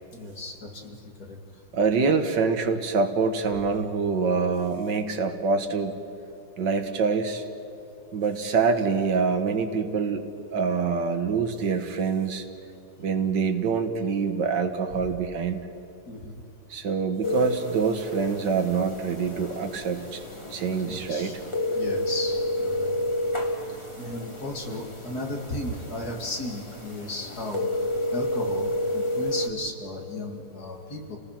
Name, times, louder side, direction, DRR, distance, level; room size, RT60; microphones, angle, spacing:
voice 1, 0.1-1.4 13.0-13.1 16.1-16.4 20.9-21.4 21.7-23.0 24.0-27.8 28.1-31.2, left 1 dB, 50° left, 1 dB, 2.9 m, -35 dB
voice 2, 1.7-5.9 6.6-7.5 8.1-10.2 10.5-12.5 13.0-15.6 16.7-20.2 20.5-21.3, right 5 dB, 65° right, 7 dB, 1.9 m, -25 dB
sound 1, 17.2-29.5, left 1 dB, 15° left, 2.3 m, -31 dB
30.0 x 19.0 x 5.9 m, 2.8 s
omnidirectional pair, 2.1 m